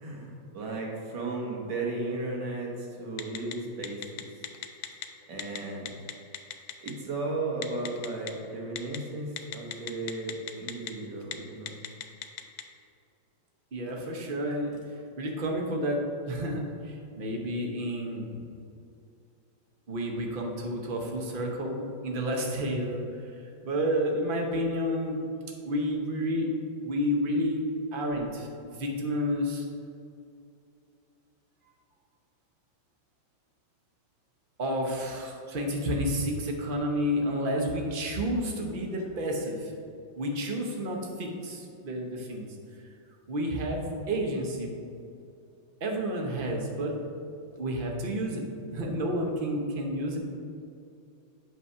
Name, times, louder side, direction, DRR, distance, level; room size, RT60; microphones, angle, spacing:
voice 1, 0.0-4.3 5.3-5.9 6.8-11.8, right 2 dB, 60° right, -1 dB, 1.7 m, -35 dB
Telephone, 3.2-3.5 3.8-5.1 5.4-5.6 5.9-6.9 7.6-8.3 8.8-9.0 9.4-10.9 11.2-11.3 11.7-12.6, left 11 dB, 80° left, 1.3 m, -35 dB
voice 2, 13.7-14.8 15.2-18.5 19.9-23.2 23.6-25.2 25.6-27.6 27.9-29.6 34.6-39.7 40.2-42.4 43.3-44.8 45.8-46.9 47.6-48.4 48.7-50.2, equal, 45° right, 0 dB, 0.7 m, -30 dB
8.3 x 4.0 x 5.5 m, 2.6 s
omnidirectional pair, 2.2 m